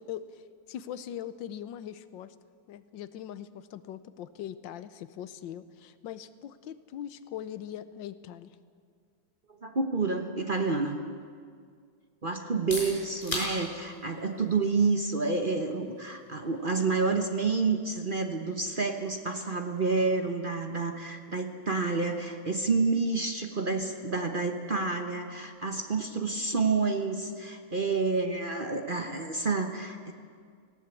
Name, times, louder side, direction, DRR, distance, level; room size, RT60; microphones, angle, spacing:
voice 1, 0.0-2.3 2.7-8.6, left 10 dB, 80° left, 14 dB, 1.5 m, -41 dB
voice 2, 9.6-11.0 12.2-30.1, right 4 dB, 35° right, 5 dB, 0.9 m, -29 dB
sound 1, 12.4-28.1, left 1 dB, 20° left, 5.5 m, -46 dB
18.5 x 16.5 x 8.4 m, 2.1 s
omnidirectional pair, 2.0 m